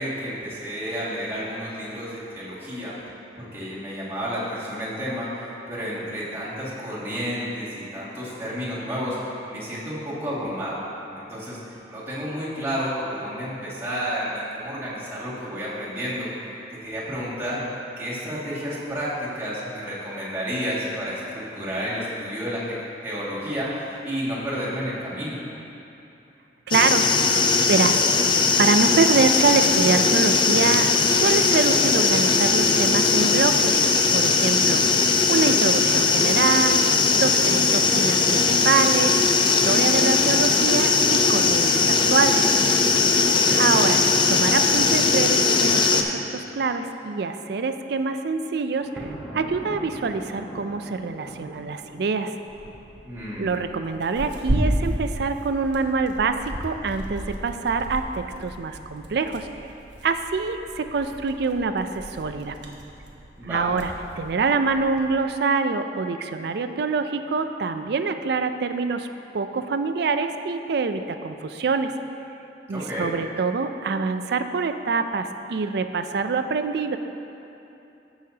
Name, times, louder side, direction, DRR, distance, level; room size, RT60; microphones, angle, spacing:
voice 1, 0.0-3.0 3.4-10.8 11.1-16.3 16.8-17.6 18.0-22.8 23.0-25.4 43.2-43.8 53.0-53.5 63.4-63.7 72.7-73.1, equal, 15° right, -10 dB, 2.1 m, -31 dB
sound 1, 26.7-46.0, left 4 dB, 30° left, 0.4 m, -19 dB
voice 2, 26.7-27.1 27.7-28.0 28.6-33.8 34.1-34.8 35.3-36.8 37.2-42.5 43.6-49.1 49.3-52.3 53.4-56.3 56.6-59.5 60.0-62.6 63.4-63.9 64.2-69.1 69.3-71.9 72.7-77.0, right 4 dB, 65° right, 8 dB, 0.4 m, -25 dB
Thunder, 48.7-52.9, equal, 5° left, 1.1 m, -40 dB
Tearing, 52.5-65.1, right 1 dB, 85° right, 1.0 m, -33 dB
15.5 x 5.7 x 2.8 m, 2.9 s
head